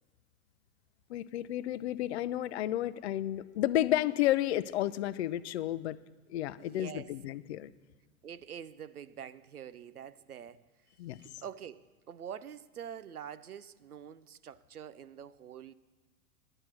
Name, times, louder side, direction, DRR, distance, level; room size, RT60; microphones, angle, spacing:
voice 1, 1.1-6.0 6.3-7.7 11.0-11.2, left 13 dB, 50° left, 0.5 m, -31 dB
voice 2, 6.6-7.1 8.2-10.6 11.2-15.7, right 8 dB, 85° right, 0.6 m, -46 dB
11.0 x 9.7 x 5.8 m
figure-of-eight pair, 90°, 44 cm